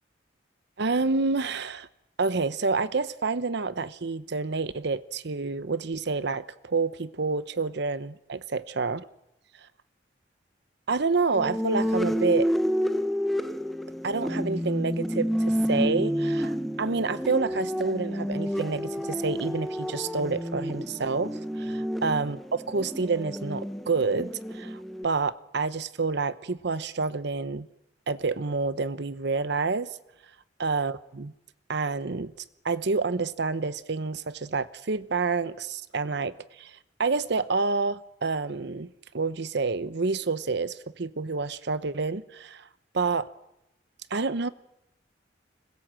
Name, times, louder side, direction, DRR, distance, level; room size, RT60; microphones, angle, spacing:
voice 1, 0.8-1.9 2.2-9.1 10.9-12.5 14.0-27.7 28.1-29.9 30.6-31.3 31.7-32.3 32.6-42.7 42.9-43.3 44.1-44.5, right 4 dB, 65° right, 0.8 m, -28 dB
sound 1, 11.3-25.0, equal, ahead, 1.0 m, -29 dB
26.0 x 21.0 x 7.6 m
head